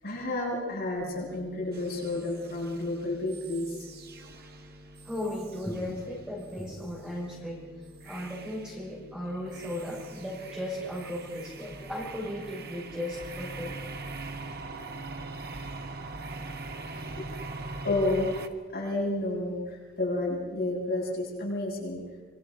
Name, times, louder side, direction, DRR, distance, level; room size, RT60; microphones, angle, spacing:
voice 1, 0.0-3.9 17.1-17.3 17.8-18.3 18.7-22.0, left 2 dB, 45° left, -4 dB, 7.9 m, -30 dB
sound 1, 1.0-11.9, equal, 25° right, 7.8 m, -52 dB
sound 2, 1.7-6.2 6.4-6.8 8.0-8.8 9.2-18.5, right 3 dB, 45° right, 1.5 m, -42 dB
voice 2, 5.0-7.7 8.0-13.8, left 1 dB, 5° right, -4 dB, 5.9 m, -36 dB
27.0 x 24.0 x 5.4 m, 1.3 s
head